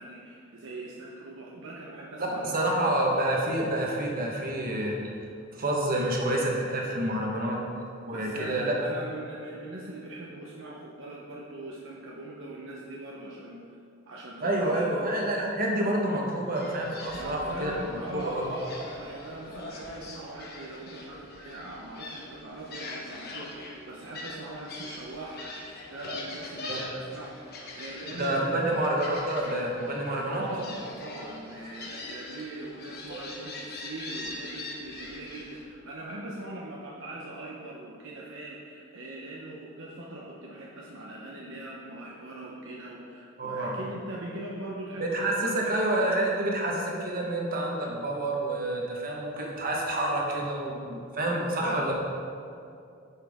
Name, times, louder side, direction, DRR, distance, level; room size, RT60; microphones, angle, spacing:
voice 1, 0.0-2.9 8.1-13.6 14.1-15.1 17.1-25.4 25.9-28.9 30.2-45.8 51.4-51.8, right 1 dB, 65° right, -4 dB, 0.9 m, -41 dB
voice 2, 2.2-5.0 5.5-7.6 8.0-8.7 14.4-18.5 26.7-26.8 28.1-30.4 43.4-43.7 45.0-51.9, right 1 dB, 45° right, -2 dB, 1.3 m, -28 dB
Gull seagull, 16.6-35.6, left 2 dB, 50° left, 1.2 m, -42 dB
9.9 x 5.7 x 3.6 m, 2.5 s
head